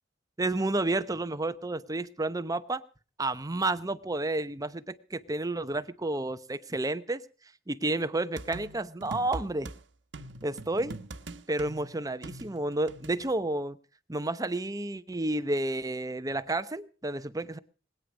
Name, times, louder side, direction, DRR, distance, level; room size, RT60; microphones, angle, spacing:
voice 1, 0.4-2.8 3.2-7.2 7.7-9.7 10.4-11.0 11.5-13.8 14.1-17.6, right 2 dB, 20° right, 0.8 m, -31 dB
sound 1, 8.4-9.8 10.1-13.3, right 2 dB, 75° right, 1.2 m, -42 dB
21.0 x 9.6 x 6.3 m
head